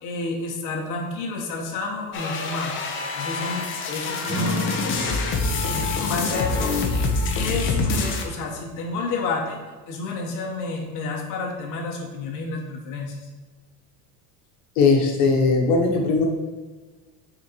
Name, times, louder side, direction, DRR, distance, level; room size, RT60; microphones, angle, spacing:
voice 1, 0.0-2.7 3.1-5.2 5.7-6.7 7.3-13.2, left 3 dB, 45° left, -2 dB, 1.2 m, -30 dB
sound 1, 2.1-8.2, left 3 dB, 30° left, 0.6 m, -26 dB
sound 2, 4.2-9.3, equal, 15° right, 1.6 m, -34 dB
voice 2, 14.8-16.2, left 4 dB, 70° left, 0 dB, 1.2 m, -19 dB
6.2 x 4.0 x 4.5 m, 1.3 s
cardioid pair, 165°, 44 cm